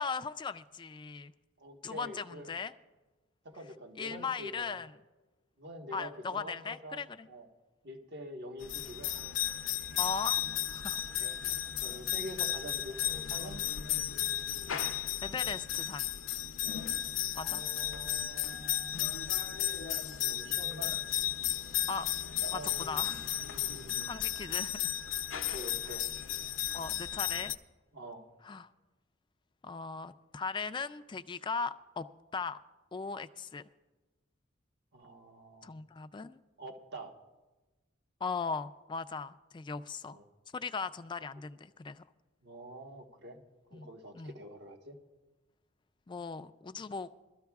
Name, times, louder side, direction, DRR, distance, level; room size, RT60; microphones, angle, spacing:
voice 1, 0.0-1.3 1.8-2.7 4.0-4.9 5.9-7.3 10.0-11.0 15.2-16.1 17.3-17.6 21.9-22.1 22.5-23.3 24.1-24.9 25.8-26.0 26.7-27.5 28.4-28.7 29.6-32.1 32.3-32.6 32.9-33.6 35.6-36.4 38.2-40.2 40.5-42.0 43.7-43.9 44.1-44.3 46.1-47.1, left 5 dB, 25° left, 11 dB, 0.3 m, -38 dB
voice 2, 1.6-2.6 3.4-4.8 5.6-7.5 7.8-9.1 11.0-11.4 11.8-13.6 17.4-20.9 21.4-21.9 22.4-24.1 25.3-26.1 27.9-28.2 34.9-35.7 36.6-37.2 40.1-40.2 42.4-43.4 43.7-45.0, equal, 55° right, 2 dB, 1.3 m, -46 dB
sound 1, 8.6-27.5, left 12 dB, 70° left, 0.5 m, -34 dB
22.0 x 13.0 x 2.3 m, 1.2 s
head